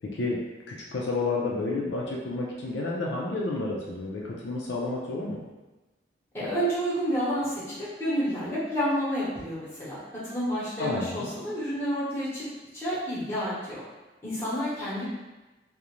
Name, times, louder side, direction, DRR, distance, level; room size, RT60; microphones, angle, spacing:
voice 1, 0.0-5.4 10.8-11.3, left 2 dB, 70° left, -3 dB, 0.4 m, -30 dB
voice 2, 6.3-12.5 12.7-13.8 14.2-15.0, equal, 15° left, -10 dB, 0.8 m, -30 dB
2.4 x 2.1 x 2.9 m, 1.1 s
head